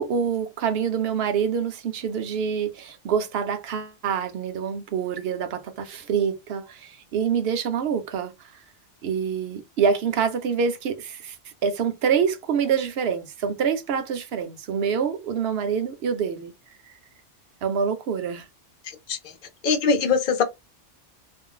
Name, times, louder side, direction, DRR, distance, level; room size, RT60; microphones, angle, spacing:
voice 1, 0.0-8.3 9.0-11.4 11.6-16.5 17.6-18.4, right 7 dB, 60° right, 0.8 m, -26 dB
voice 2, 19.6-20.4, left 5 dB, 50° left, 0.7 m, -22 dB
2.5 x 2.0 x 3.6 m
omnidirectional pair, 1.2 m